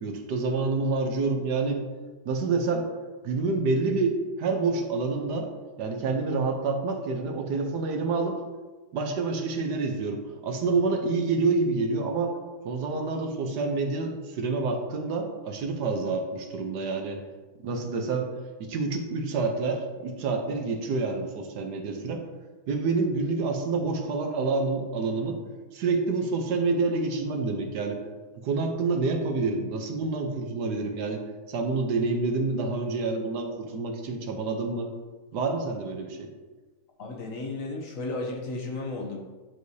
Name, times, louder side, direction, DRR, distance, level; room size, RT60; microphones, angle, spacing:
voice 1, 0.0-1.8 2.3-2.9 3.2-5.5 5.8-8.4 8.9-12.3 12.6-17.2 17.6-18.3 18.6-22.2 22.7-25.4 25.7-28.0 28.4-34.9 35.3-36.3, right 3 dB, 75° right, 3 dB, 1.4 m, -28 dB
voice 2, 37.0-39.2, left 2 dB, 60° left, 0 dB, 1.0 m, -33 dB
9.5 x 4.7 x 2.7 m, 1.3 s
omnidirectional pair, 1.8 m